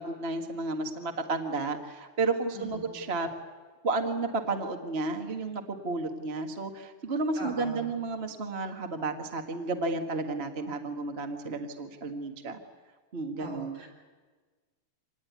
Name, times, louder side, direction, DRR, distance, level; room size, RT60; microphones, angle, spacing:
voice 1, 0.0-3.3 3.8-12.6 13.1-13.8, right 3 dB, 30° right, 4 dB, 1.2 m, -32 dB
voice 2, 2.5-3.0 7.4-7.9 13.4-13.9, right 1 dB, 55° right, 1 dB, 5.7 m, -41 dB
26.5 x 19.5 x 9.5 m, 1.4 s
omnidirectional pair, 3.5 m